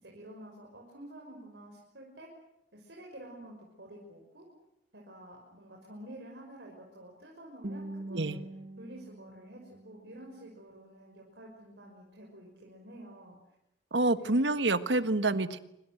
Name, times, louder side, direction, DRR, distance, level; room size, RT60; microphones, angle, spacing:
voice 1, 0.0-2.3 2.7-4.4 4.9-8.4 8.8-13.4 14.0-14.4, right 1 dB, 70° right, -1 dB, 6.1 m, -49 dB
Guitar, 7.6-10.6, right 1 dB, 55° right, 1.6 m, -44 dB
voice 2, 13.9-15.6, right 2 dB, 85° right, 11 dB, 1.5 m, -27 dB
26.5 x 25.0 x 8.0 m, 0.82 s
head